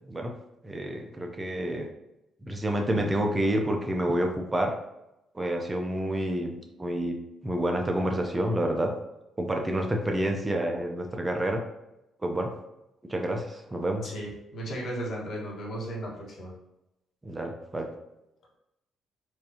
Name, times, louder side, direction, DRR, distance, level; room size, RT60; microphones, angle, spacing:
voice 1, 0.6-1.9 2.4-4.7 5.3-7.1 7.4-8.9 9.4-11.6 12.2-12.5 13.1-14.1 17.2-17.9, right 1 dB, 20° right, 2 dB, 0.6 m, -28 dB
voice 2, 14.0-16.5, right 1 dB, 60° left, -3 dB, 1.4 m, -35 dB
4.5 x 2.7 x 2.8 m, 0.90 s
cardioid pair, 90°, 0 cm